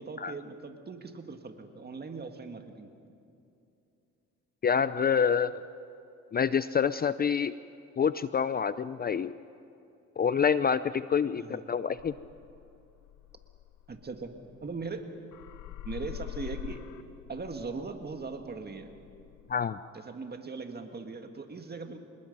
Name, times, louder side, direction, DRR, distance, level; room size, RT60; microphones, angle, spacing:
voice 1, 0.0-3.1 11.4-11.6 13.9-14.4 14.6-15.1 15.8-16.8 17.3-18.9 19.9-22.0, right 4 dB, 35° right, 6 dB, 1.9 m, -40 dB
voice 2, 4.6-5.6 6.3-7.5 8.0-9.3 10.2-12.1 19.5-19.8, left 7 dB, 30° left, 15 dB, 0.4 m, -27 dB
sound 1, 12.0-15.0 15.3-19.5, left 14 dB, 90° left, 0.8 m, -45 dB
26.0 x 20.0 x 5.4 m, 2.7 s
cardioid pair, 90°, 30 cm